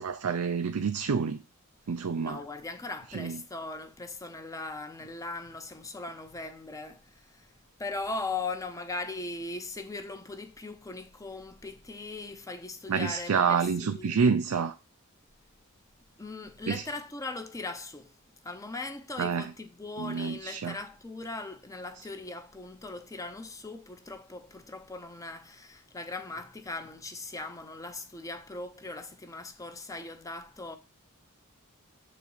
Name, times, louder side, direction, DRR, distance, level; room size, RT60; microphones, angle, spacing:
voice 1, 0.0-1.4 1.9-2.4 3.1-3.4 12.9-14.7 16.7-16.8 19.2-19.5 20.0-20.7, right 5 dB, 85° right, 0.5 m, -28 dB
voice 2, 2.2-7.5 7.8-14.3 16.2-18.1 18.4-30.8, left 3 dB, 15° left, 0.6 m, -39 dB
6.8 x 4.1 x 4.6 m
head